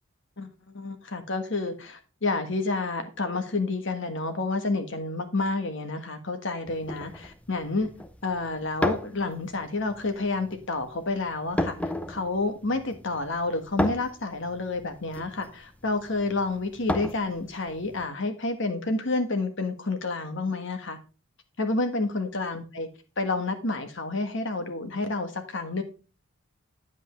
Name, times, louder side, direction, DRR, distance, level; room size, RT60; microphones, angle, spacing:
voice 1, 0.4-7.9 8.2-21.0 21.6-22.9 23.2-25.8, left 3 dB, 55° left, 1.5 m, -29 dB
sound 1, 6.7-18.0, left 1 dB, 5° left, 0.6 m, -35 dB
9.2 x 8.2 x 3.1 m
head